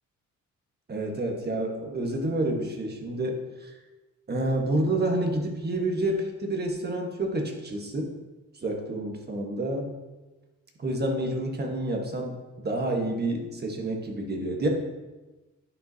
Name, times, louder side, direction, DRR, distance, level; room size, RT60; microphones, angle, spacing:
voice 1, 0.9-3.7 4.3-8.1 8.5-9.9 10.8-12.4 12.6-14.7, right 1 dB, 35° right, 2 dB, 1.4 m, -29 dB
10.0 x 5.3 x 2.8 m, 1.2 s
cardioid pair, 90°, 30 cm